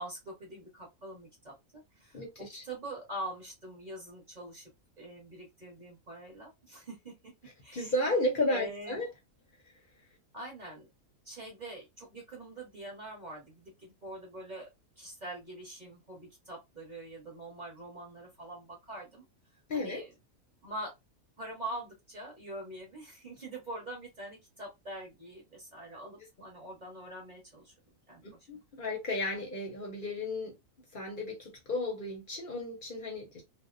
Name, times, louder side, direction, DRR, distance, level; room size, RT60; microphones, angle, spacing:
voice 1, 0.0-1.5 1.9-4.7 5.0-7.3 7.6-7.9 8.5-9.0 10.3-10.9 11.2-14.7 15.0-19.2 19.7-20.1 20.6-20.9 21.4-27.7 28.1-28.5, right 1 dB, 35° right, 1.0 m, -44 dB
voice 2, 2.1-2.6 7.7-9.1 19.7-20.0 28.5-30.6 30.9-33.4, left 2 dB, 50° left, 0.7 m, -33 dB
2.5 x 2.1 x 2.4 m
omnidirectional pair, 1.4 m